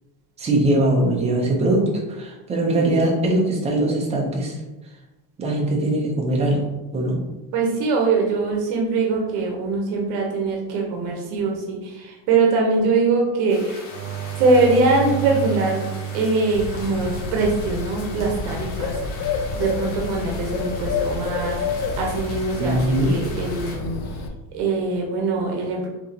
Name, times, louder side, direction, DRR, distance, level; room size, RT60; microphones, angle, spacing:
voice 1, 0.4-4.5 5.4-6.6 6.9-7.2 22.6-23.2, right 1 dB, 15° right, -1 dB, 0.5 m, -21 dB
voice 2, 7.5-13.9 14.4-15.8 16.1-24.0 24.5-25.9, right 3 dB, 60° right, 0 dB, 0.9 m, -22 dB
sound 1, 13.5-23.8, left 3 dB, 45° left, 0.9 m, -40 dB
sound 2, 13.9-18.5 21.8-22.3, right 9 dB, 80° right, 0.5 m, -32 dB
Bird, 16.5-24.3, left 4 dB, 70° left, 0.6 m, -29 dB
4.7 x 3.8 x 2.7 m, 1.1 s
cardioid pair, 175°, 43 cm